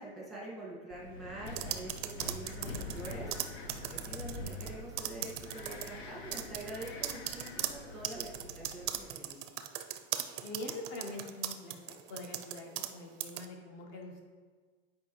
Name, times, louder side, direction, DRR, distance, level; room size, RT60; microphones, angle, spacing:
voice 1, 0.0-9.4, right 1 dB, ahead, -5 dB, 1.6 m, -45 dB
Wind, 0.9-9.0, left 2 dB, 85° left, 0.9 m, -45 dB
sound 1, 1.5-4.7 5.0-5.9 6.3-12.9 13.2-13.4, right 13 dB, 40° right, 0.4 m, -38 dB
voice 2, 10.4-14.2, left 2 dB, 35° left, 2 dB, 1.2 m, -44 dB
9.1 x 4.9 x 3.1 m, 1.5 s
supercardioid pair, 155°, 31 cm